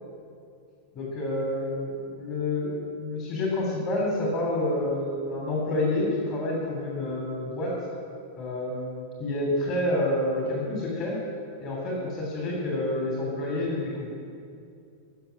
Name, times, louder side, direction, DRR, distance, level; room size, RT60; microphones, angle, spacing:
voice 1, 0.9-7.7 8.4-11.2 11.6-14.1, left 1 dB, 35° left, -2 dB, 3.3 m, -28 dB
14.0 x 7.5 x 9.9 m, 2.4 s
figure-of-eight pair, 90°, 0 cm